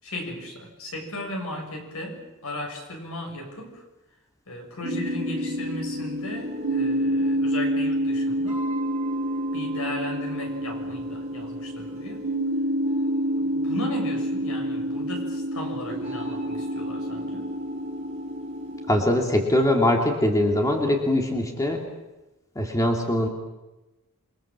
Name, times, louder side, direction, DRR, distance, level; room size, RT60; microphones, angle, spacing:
voice 1, 0.0-3.8 4.5-8.7 9.5-12.3 13.4-17.5, left 1 dB, 70° left, 2 dB, 7.0 m, -36 dB
sound 1, 4.8-18.9, equal, 30° right, 6.5 m, -28 dB
voice 2, 18.9-21.8 22.6-23.3, left 1 dB, 15° left, 1 dB, 2.7 m, -22 dB
28.0 x 23.0 x 7.5 m, 1.0 s
head